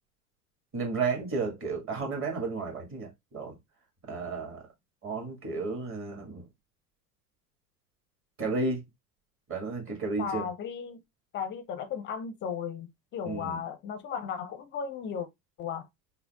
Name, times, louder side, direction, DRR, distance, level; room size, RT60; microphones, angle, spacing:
voice 1, 0.7-3.5 4.1-4.6 5.0-6.4 8.4-8.8 9.5-10.4 13.3-13.6, right 4 dB, 25° right, 1.5 m, -32 dB
voice 2, 10.2-11.0 11.3-15.3 15.6-15.9, left 7 dB, 25° left, 0.5 m, -35 dB
5.4 x 2.1 x 2.3 m
figure-of-eight pair, 85°, 46 cm